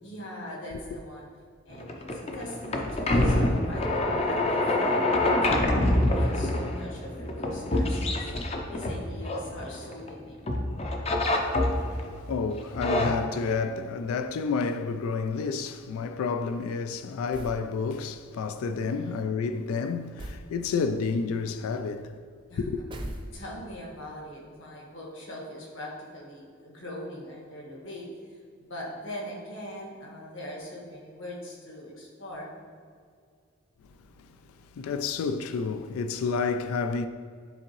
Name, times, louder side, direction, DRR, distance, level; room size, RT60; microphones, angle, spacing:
voice 1, 0.0-1.3 1.6-5.7 6.1-8.3 8.7-10.4 18.7-19.2 22.5-32.6, left 1 dB, 60° left, 1.5 m, -41 dB
sound 1, 1.7-10.1 10.5-12.1 12.6-13.1, left 1 dB, 30° left, 0.5 m, -26 dB
voice 2, 11.4-22.2 22.6-22.8 33.8-34.4 34.7-37.1, left 5 dB, 85° left, 0.3 m, -30 dB
sound 2, 17.3-17.7 20.2-20.5 22.9-23.7, right 1 dB, 20° right, 0.4 m, -39 dB
10.0 x 3.7 x 3.0 m
head